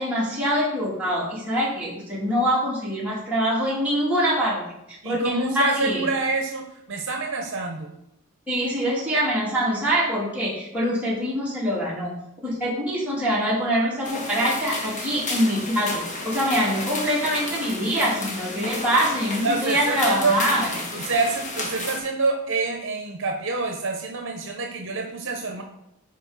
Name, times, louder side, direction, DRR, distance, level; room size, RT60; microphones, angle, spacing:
voice 1, 0.0-6.1 8.5-12.1 12.4-20.7, equal, 5° right, -8 dB, 2.9 m, -24 dB
voice 2, 5.0-7.9 19.4-20.4 20.9-25.6, right 3 dB, 60° right, 3 dB, 1.0 m, -27 dB
sound 1, 14.0-22.0, left 2 dB, 35° left, 1.2 m, -32 dB
10.5 x 4.5 x 4.1 m, 0.83 s
head